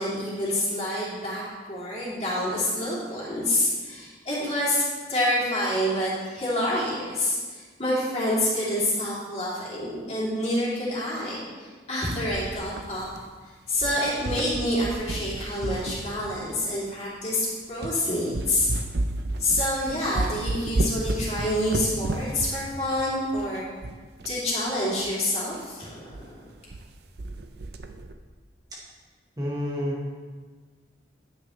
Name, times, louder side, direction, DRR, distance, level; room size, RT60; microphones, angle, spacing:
voice 1, 0.0-1.4 1.7-13.1 13.7-18.7 19.4-23.7 24.2-26.4, left 1 dB, 35° left, -7 dB, 2.8 m, -27 dB
sound 1, 12.3-13.5 13.8-16.7 17.3-17.4 17.8-18.0 18.3-24.4 24.7-24.8 25.0-25.1 25.5-25.7 26.1-26.3 26.5-26.9 27.2-28.1, right 2 dB, 60° right, 0.6 m, -32 dB
voice 2, 29.4-30.1, equal, 20° right, -5 dB, 1.2 m, -29 dB
10.0 x 9.2 x 3.2 m, 1.5 s
head